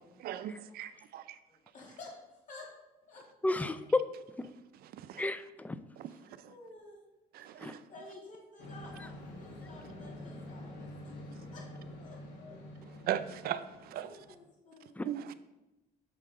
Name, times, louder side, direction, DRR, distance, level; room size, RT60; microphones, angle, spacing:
voice 1, 0.2-1.4 4.8-5.3 6.0-6.1 7.3-7.8 13.1-14.2 15.0-15.3, right 11 dB, 65° right, 0.4 m, -38 dB
voice 2, 0.9-2.7 3.1-3.2 3.5-3.6 4.7-4.8 6.0-6.2 6.5-7.0 7.9-11.6 12.0-12.6 13.9-14.9, left 2 dB, 50° left, 2.5 m, -53 dB
voice 3, 3.4-4.0 4.4-4.5 5.2-5.8 7.6-7.7 15.0-15.1, left 2 dB, 10° left, 0.3 m, -31 dB
sound 1, 8.6-14.4, left 1 dB, 80° left, 1.7 m, -47 dB
6.4 x 5.7 x 3.7 m
cardioid pair, 110°, 17 cm